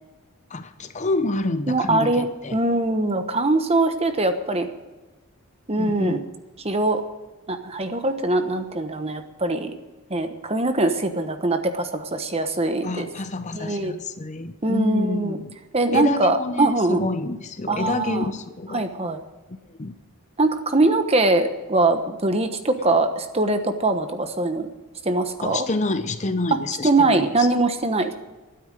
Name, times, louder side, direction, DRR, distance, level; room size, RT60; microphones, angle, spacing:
voice 1, 0.5-2.6 5.8-6.2 12.8-15.6 15.9-18.9 19.8-19.9 25.4-27.5, left 2 dB, 30° left, 11 dB, 0.6 m, -28 dB
voice 2, 1.7-4.7 5.7-6.2 6.6-7.0 7.5-9.7 10.1-13.1 13.5-13.9 14.6-15.4 15.7-17.0 17.7-18.3 18.7-19.2 20.4-24.7 25.0-25.7 26.5-28.1, right 2 dB, 25° right, 8 dB, 1.1 m, -22 dB
12.5 x 9.7 x 9.0 m, 1.2 s
head